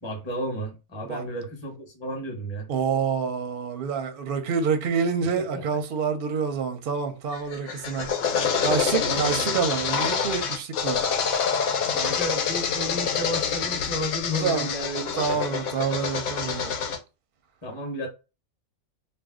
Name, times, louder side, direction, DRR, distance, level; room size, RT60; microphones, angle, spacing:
voice 1, 0.0-2.7 5.2-5.3 8.9-9.6 11.9-15.4 17.6-18.1, equal, 20° left, 0.9 m, -32 dB
voice 2, 2.7-8.2 8.6-11.0 14.4-14.7 15.2-16.7, right 6 dB, 55° right, 0.6 m, -27 dB
sound 1, 7.3-17.0, left 6 dB, 75° left, 1.0 m, -27 dB
2.6 x 2.2 x 3.5 m
omnidirectional pair, 1.5 m